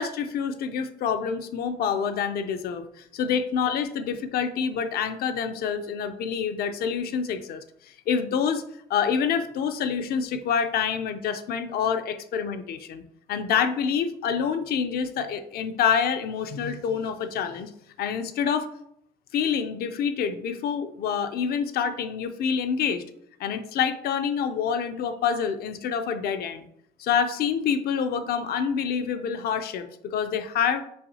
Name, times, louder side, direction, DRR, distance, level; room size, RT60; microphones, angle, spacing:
voice 1, 0.0-8.6 8.9-17.7 18.0-18.7 19.3-23.0 23.4-26.7 27.0-30.8, left 7 dB, 65° left, 9 dB, 0.5 m, -27 dB
5.6 x 3.1 x 2.7 m, 0.71 s
cardioid pair, 110°, 17 cm